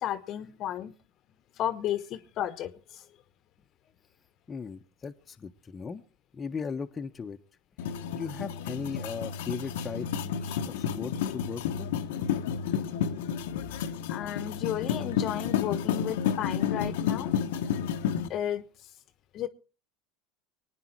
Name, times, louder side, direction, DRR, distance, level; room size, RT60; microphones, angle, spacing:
voice 1, 0.0-0.9 1.6-3.0 14.1-17.3 18.3-18.6 19.3-19.5, left 11 dB, 50° left, 1.2 m, -33 dB
voice 2, 4.5-6.0 6.3-7.4 8.2-10.1 10.4-11.9, left 5 dB, 25° left, 1.1 m, -37 dB
sound 1, 7.8-18.3, left 8 dB, 75° left, 1.0 m, -31 dB
23.5 x 9.6 x 4.6 m
hypercardioid pair, 85°, 0 cm